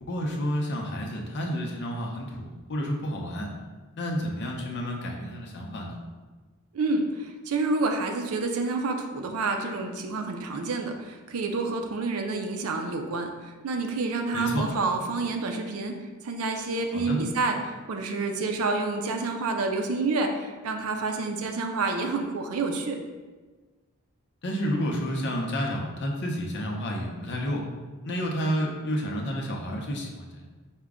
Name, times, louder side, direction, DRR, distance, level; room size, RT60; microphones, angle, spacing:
voice 1, 0.0-3.5 4.0-6.0 14.3-14.7 16.9-17.2 24.4-27.6 28.0-30.5, equal, 50° left, 0 dB, 0.6 m, -30 dB
voice 2, 6.7-13.3 13.6-15.9 16.2-23.0, right 3 dB, 80° right, 5 dB, 0.5 m, -28 dB
4.9 x 2.2 x 3.5 m, 1.3 s
head